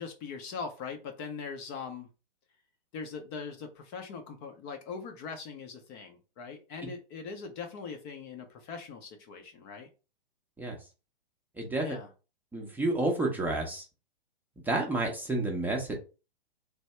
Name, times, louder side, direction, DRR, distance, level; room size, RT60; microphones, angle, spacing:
voice 1, 0.0-2.1 2.9-9.9 11.8-12.1, left 5 dB, 30° left, 0.6 m, -41 dB
voice 2, 11.5-11.9 12.5-13.9 14.6-16.0, right 2 dB, 5° right, 0.7 m, -30 dB
3.3 x 2.6 x 4.2 m
hypercardioid pair, 130°, 29 cm